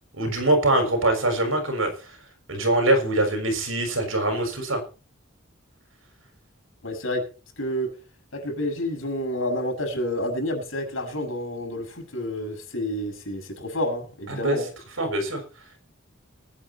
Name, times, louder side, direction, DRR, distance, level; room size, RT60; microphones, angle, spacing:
voice 1, 0.1-1.9 2.5-4.8 14.3-14.6 15.0-15.4, right 1 dB, 90° right, 5 dB, 6.0 m, -23 dB
voice 2, 6.8-7.2 7.6-7.9 8.3-14.7, left 1 dB, 80° left, 2 dB, 6.6 m, -29 dB
20.0 x 9.6 x 4.3 m, 0.35 s
head